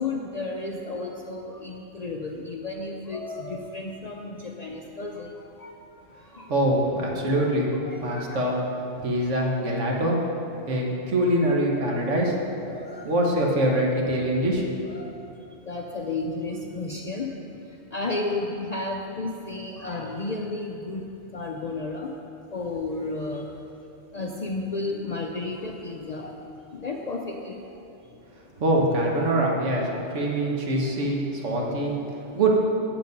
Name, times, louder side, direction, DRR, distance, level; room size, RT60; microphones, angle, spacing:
voice 1, 0.0-5.7 6.3-6.5 7.7-8.5 12.7-13.1 14.8-15.1 15.6-17.4 17.9-21.1 21.3-22.1 22.5-23.5 24.1-26.4 26.7-27.6 29.9-30.0 31.1-31.2 32.1-32.4, left 3 dB, 50° left, 0 dB, 0.5 m, -33 dB
voice 2, 6.5-7.7 8.0-8.6 9.0-10.2 10.7-12.4 13.0-14.6 28.6-29.9 30.1-32.0 32.3-32.6, right 1 dB, 75° right, -1 dB, 1.5 m, -24 dB
7.6 x 7.6 x 5.3 m, 2.8 s
omnidirectional pair, 1.2 m